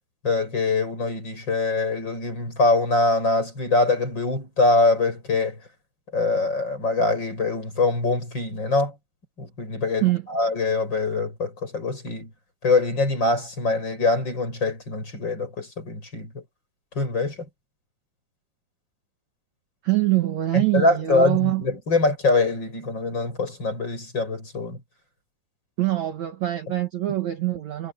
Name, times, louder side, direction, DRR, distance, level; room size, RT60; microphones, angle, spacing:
voice 1, 0.2-5.6 6.1-8.9 9.4-12.3 12.6-16.4 17.0-17.4 20.5-24.8, left 3 dB, 25° left, 7.7 m, -23 dB
voice 2, 19.8-21.6 25.8-27.9, right 16 dB, 75° right, 1.7 m, -24 dB
omnidirectional pair, 5.3 m